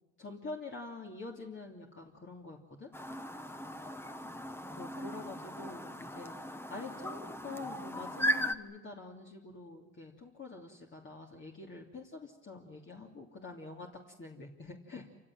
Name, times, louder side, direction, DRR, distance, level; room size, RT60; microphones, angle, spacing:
voice 1, 0.2-2.9 4.8-6.3 6.7-13.9 14.2-15.0, left 3 dB, 40° left, -1 dB, 3.0 m, -46 dB
Chirp tweet, 2.9-8.5, equal, 10° left, 1.3 m, -37 dB
28.0 x 16.5 x 9.2 m, 1.1 s
cardioid pair, 90°, 30 cm